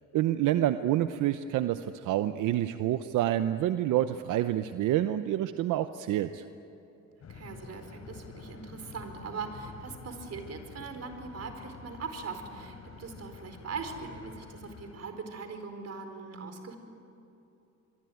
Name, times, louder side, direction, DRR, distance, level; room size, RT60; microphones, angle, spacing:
voice 1, 0.1-6.4, right 12 dB, 85° right, 10 dB, 0.8 m, -28 dB
sound 1, 7.2-14.9, left 5 dB, 55° left, 3.7 m, -48 dB
voice 2, 7.2-16.8, right 4 dB, 55° right, 7 dB, 4.6 m, -41 dB
26.5 x 22.5 x 9.4 m, 2.9 s
cardioid pair, 90°, 30 cm